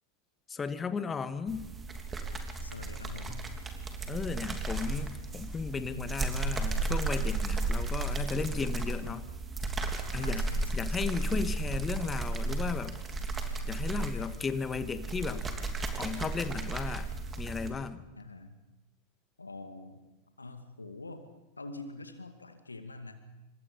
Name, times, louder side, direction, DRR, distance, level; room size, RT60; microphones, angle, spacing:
voice 1, 0.5-1.6 4.1-9.2 10.1-10.5 10.7-12.9 13.7-15.4 16.0-17.1 17.4-18.0, left 5 dB, 15° left, 12 dB, 1.6 m, -35 dB
sound 1, 1.5-17.7, right 2 dB, 15° right, 3.1 m, -34 dB
voice 2, 2.6-3.5 5.9-6.4 7.8-8.2 10.2-11.4 18.2-18.6 19.4-20.0 20.4-21.3 21.6-23.2, left 3 dB, 80° left, 8 dB, 2.1 m, -45 dB
27.5 x 25.5 x 5.5 m, 1.0 s
figure-of-eight pair, 90°, 0 cm